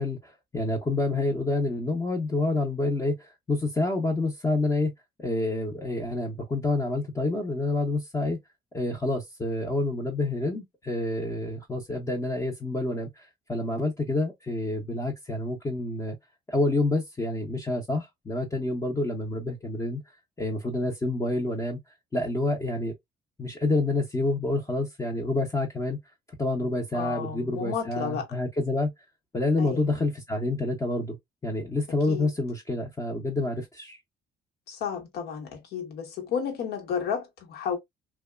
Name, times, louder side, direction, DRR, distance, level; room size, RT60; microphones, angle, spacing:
voice 1, 0.0-4.9 5.2-8.4 8.7-16.1 16.5-20.0 20.4-21.8 22.1-22.9 23.4-26.0 26.4-28.9 29.3-31.2 31.4-34.0, left 2 dB, 20° left, 0.7 m, -28 dB
voice 2, 26.9-28.3 29.6-30.0 32.1-32.3 34.7-37.8, left 7 dB, 75° left, 1.1 m, -32 dB
2.8 x 2.2 x 2.2 m
cardioid pair, 110°, 17 cm